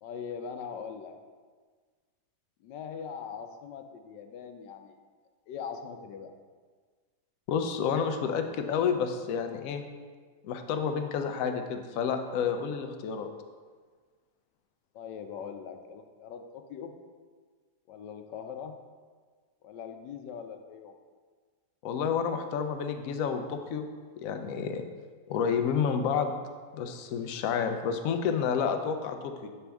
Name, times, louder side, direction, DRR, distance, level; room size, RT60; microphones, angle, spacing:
voice 1, 0.0-1.2 2.6-5.0 5.5-6.3 14.9-16.9 17.9-18.8 19.6-21.0, left 6 dB, 85° left, 6 dB, 1.2 m, -41 dB
voice 2, 7.5-9.8 10.4-13.3 21.8-23.9 24.2-24.8 25.3-26.3 26.7-29.5, left 6 dB, 70° left, 6 dB, 0.8 m, -30 dB
7.2 x 4.3 x 3.4 m, 1.5 s
omnidirectional pair, 1.8 m